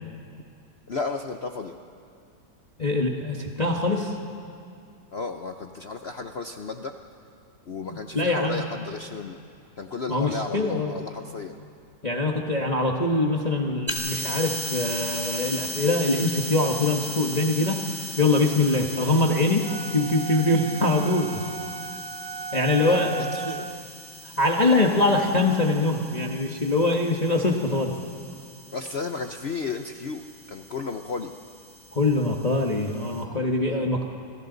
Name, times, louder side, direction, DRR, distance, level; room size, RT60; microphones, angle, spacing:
voice 1, 0.9-1.7 5.1-6.9 7.7-9.4 9.8-11.6 22.8-23.7 28.7-30.2 30.5-31.3 33.6-33.9, left 4 dB, 55° left, 5 dB, 0.7 m, -33 dB
voice 2, 2.8-4.2 7.8-8.6 10.1-10.9 12.0-17.8 18.2-21.4 22.5-23.6 24.2-27.9 31.9-34.0, left 2 dB, 25° left, 1 dB, 1.2 m, -23 dB
sound 1, 13.9-33.2, equal, 10° right, 1.5 m, -38 dB
sound 2, 19.6-23.9, right 8 dB, 65° right, 0.5 m, -35 dB
29.5 x 25.5 x 4.0 m, 2.5 s
omnidirectional pair, 2.0 m